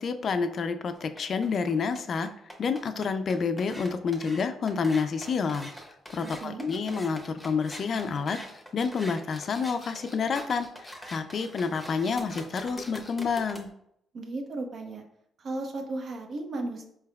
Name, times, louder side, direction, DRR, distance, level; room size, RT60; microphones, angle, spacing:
voice 1, 0.0-2.3 2.6-5.7 6.1-8.4 8.7-13.7, left 5 dB, 55° left, 9 dB, 0.3 m, -29 dB
sound 1, 0.9-13.6, equal, ahead, 0.8 m, -44 dB
voice 2, 6.2-6.7 14.1-15.0 15.4-16.9, right 2 dB, 55° right, 3 dB, 0.7 m, -35 dB
4.5 x 3.4 x 2.3 m, 0.72 s
cardioid pair, 90°, 0 cm